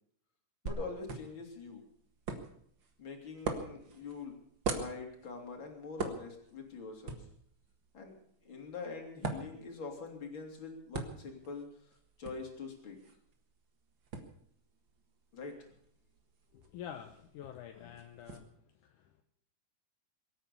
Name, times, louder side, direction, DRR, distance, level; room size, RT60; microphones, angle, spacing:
voice 1, 0.6-1.8 3.0-4.3 4.7-7.3 7.9-8.1 8.4-11.9 12.2-13.0 15.3-15.7, left 4 dB, 40° left, 2 dB, 3.6 m, -44 dB
sound 1, 0.7-18.4, right 4 dB, 45° right, 1.9 m, -44 dB
voice 2, 16.5-18.5 18.8-19.2, left 9 dB, 75° left, 5 dB, 2.4 m, -48 dB
22.5 x 9.0 x 7.0 m, 0.67 s
omnidirectional pair, 3.8 m